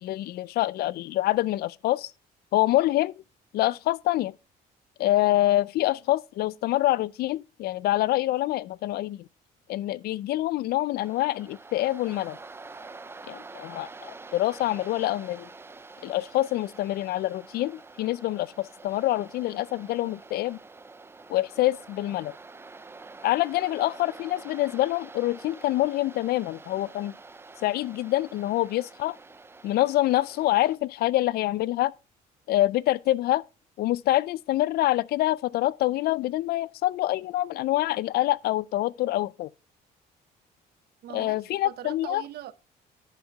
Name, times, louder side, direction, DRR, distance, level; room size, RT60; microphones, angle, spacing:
voice 1, 0.0-2.1 2.5-3.1 3.5-4.3 5.0-9.3 9.7-12.4 13.3-15.5 16.0-20.6 21.3-22.3 23.2-27.1 27.6-29.2 29.6-31.9 32.5-33.4 33.8-39.5 41.1-42.2, left 15 dB, 65° left, 0.4 m, -26 dB
Waves surf, 11.0-30.8, right 3 dB, 15° right, 0.4 m, -47 dB
voice 2, 41.0-42.5, right 12 dB, 70° right, 0.8 m, -41 dB
10.5 x 5.1 x 4.6 m
cardioid pair, 110°, 17 cm